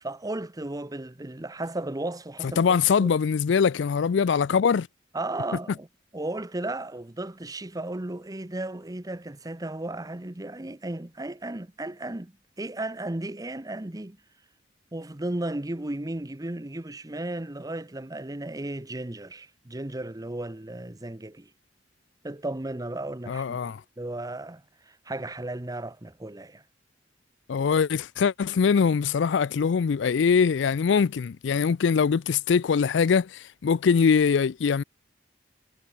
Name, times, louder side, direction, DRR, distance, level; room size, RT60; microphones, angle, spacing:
voice 1, 0.0-2.6 3.0-3.1 5.1-5.9 6.1-12.3 12.6-14.2 14.9-21.5 22.2-26.6, right 2 dB, 20° right, 0.9 m, -35 dB
voice 2, 2.4-4.9 23.3-23.8 27.5-34.8, left 6 dB, 70° left, 0.4 m, -22 dB
head